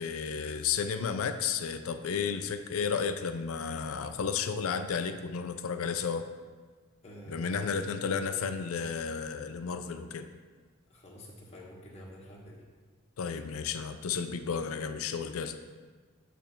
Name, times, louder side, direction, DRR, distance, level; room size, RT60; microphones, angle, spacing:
voice 1, 0.0-6.2 7.3-10.3 13.2-15.6, left 6 dB, 85° left, 9 dB, 0.4 m, -32 dB
voice 2, 7.0-8.4 10.9-12.6, equal, 30° left, -4 dB, 1.2 m, -48 dB
8.5 x 3.4 x 5.7 m, 1.5 s
head